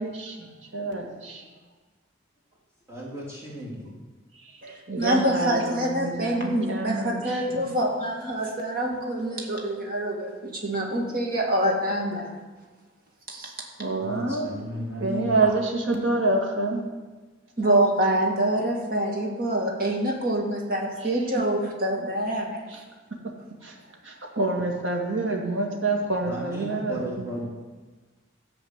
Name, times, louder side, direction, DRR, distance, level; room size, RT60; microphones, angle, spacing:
voice 1, 0.0-1.4 4.4-4.6 4.9-7.7 13.8-14.5 15.0-16.9 21.0-21.1 22.7-22.8 23.6-23.8 24.0-27.2, right 2 dB, 75° right, 0 dB, 2.1 m, -27 dB
voice 2, 2.9-3.9 14.0-15.4 26.2-27.5, equal, 15° right, -7 dB, 3.2 m, -35 dB
voice 3, 4.6-12.3 13.3-13.5 17.6-22.6, right 1 dB, 50° right, -1 dB, 2.1 m, -26 dB
14.0 x 5.0 x 8.0 m, 1.3 s
head